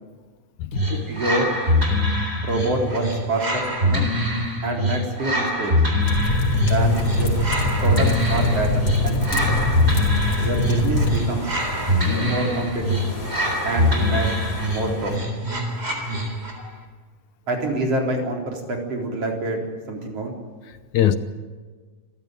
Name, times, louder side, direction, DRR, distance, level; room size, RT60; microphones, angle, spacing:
sound 1, 0.7-16.7, left 1 dB, 15° right, 3.7 m, -24 dB
voice 1, 0.9-1.5 2.4-4.1 4.6-5.7 6.7-7.3 7.8-9.6 10.4-11.5 12.0-13.1 13.6-14.3 14.6-15.1 17.5-20.4, right 2 dB, 45° right, 1 dB, 4.8 m, -26 dB
sound 2, 6.0-11.2, left 2 dB, 45° left, 4.8 m, -22 dB
sound 3, 6.8-15.2, left 2 dB, 15° left, 3.6 m, -35 dB
voice 2, 20.7-21.2, left 11 dB, 70° left, 11 dB, 2.0 m, -23 dB
27.0 x 14.5 x 9.2 m, 1.5 s
omnidirectional pair, 4.0 m